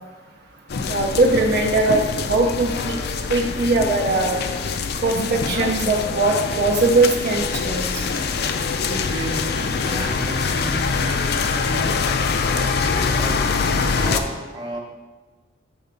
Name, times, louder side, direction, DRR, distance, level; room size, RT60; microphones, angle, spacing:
sound 1, 0.7-14.2, left 5 dB, 60° left, 0.4 m, -24 dB
voice 1, 0.9-2.9 3.3-4.4 5.0-8.1, right 3 dB, 60° right, 1 dB, 0.6 m, -20 dB
voice 2, 8.9-13.5 14.0-14.8, right 1 dB, 25° right, -1 dB, 1.0 m, -33 dB
7.0 x 3.3 x 5.2 m, 1.3 s
head